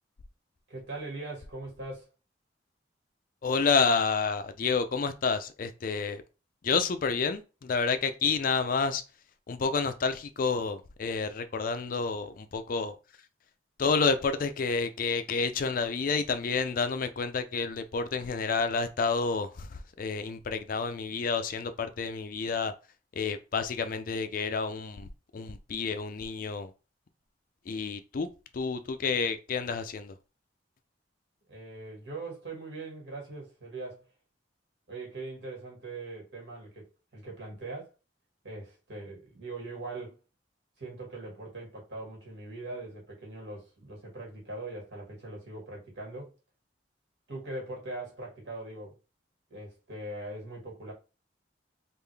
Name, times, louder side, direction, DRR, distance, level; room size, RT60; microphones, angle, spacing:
voice 1, 0.7-2.1 31.5-34.0 34.9-37.9 38.4-40.2 40.8-46.3 47.3-49.0 49.5-50.9, right 2 dB, 70° right, 1.9 m, -41 dB
voice 2, 3.4-6.2 6.6-9.0 9.5-12.9 13.8-22.7 23.1-25.1 25.3-26.7 27.7-28.3 28.5-30.1, left 5 dB, 50° left, 0.4 m, -29 dB
3.7 x 2.5 x 3.3 m
head